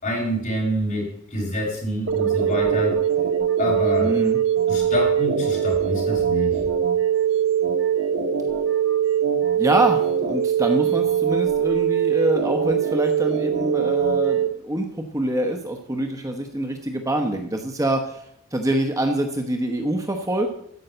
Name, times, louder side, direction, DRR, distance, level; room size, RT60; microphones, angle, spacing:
voice 1, 0.0-3.0 3.6-4.1 4.7-6.6, left 1 dB, 40° left, -3 dB, 5.7 m, -26 dB
sound 1, 2.1-14.5, right 8 dB, 65° right, 1.2 m, -22 dB
voice 2, 4.0-4.4 9.6-18.2 18.5-20.6, right 1 dB, 15° right, 4 dB, 0.9 m, -25 dB
13.5 x 5.6 x 7.9 m, 0.72 s
head